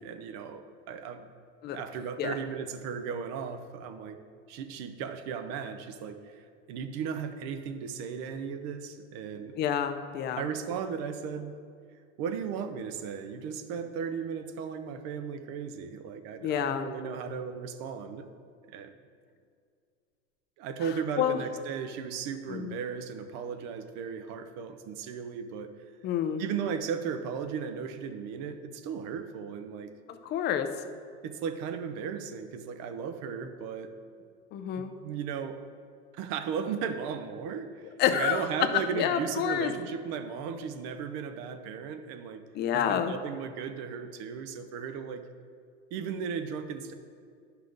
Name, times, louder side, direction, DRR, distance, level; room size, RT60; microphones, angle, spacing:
voice 1, 0.0-1.3 1.7-4.2 4.5-9.6 10.4-11.5 12.2-18.3 18.7-18.9 20.6-25.8 26.4-29.9 31.2-33.9 34.8-35.6 36.1-42.4 42.7-45.3 45.9-46.9, right 6 dB, 45° right, 9 dB, 0.7 m, -36 dB
voice 2, 9.6-10.5 16.4-16.9 21.2-21.4 22.5-22.8 26.0-26.4 30.1-30.7 34.5-34.9 38.0-38.4 38.9-39.7 42.5-43.1, left 9 dB, 30° left, 8 dB, 0.5 m, -28 dB
11.0 x 5.7 x 3.9 m, 2.2 s
supercardioid pair, 135°, 37 cm